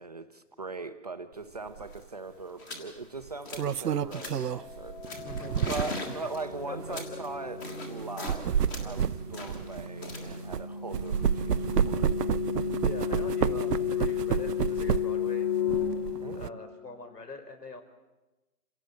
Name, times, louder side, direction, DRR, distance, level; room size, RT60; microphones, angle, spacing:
voice 1, 0.0-5.0 5.7-7.6 7.9-12.1 16.2-16.6, right 3 dB, 25° right, 8 dB, 0.7 m, -40 dB
sound 1, 1.6-1.7 1.8-2.1 2.6-2.9 3.2-3.8 4.1-4.6 5.0-8.4 8.7-11.7, left 2 dB, 15° left, 1.6 m, -42 dB
sound 2, 1.8-2.0 3.2-6.1 6.8-6.9 8.0-10.6 10.9-15.3 15.7-16.5, right 8 dB, 85° right, 0.8 m, -30 dB
sound 3, 4.4-17.1, left 7 dB, 35° left, 3.7 m, -34 dB
voice 2, 5.1-5.7 6.7-7.2 12.8-15.5 16.3-17.8, left 3 dB, 85° left, 8 dB, 4.4 m, -44 dB
27.0 x 17.0 x 7.7 m, 1.1 s
hypercardioid pair, 165°, 46 cm